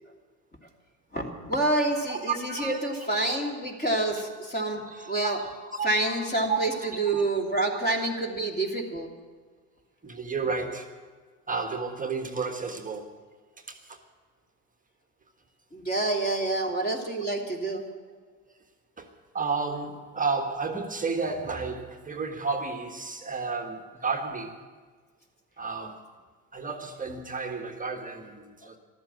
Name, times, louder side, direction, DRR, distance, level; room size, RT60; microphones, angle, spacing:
voice 1, 1.1-4.8 5.1-5.4 5.8-6.7 7.0-9.1 15.7-17.8, right 2 dB, 20° left, 1 dB, 3.0 m, -27 dB
voice 2, 1.9-2.9 4.1-4.3 4.8-7.2 10.0-11.0 11.5-13.2 13.7-14.0 18.1-18.2 19.0-19.1 19.3-24.7 25.6-26.1 26.5-28.8, right 4 dB, 15° right, 4 dB, 1.5 m, -32 dB
14.0 x 12.5 x 7.7 m, 1.5 s
hypercardioid pair, 75°, 48 cm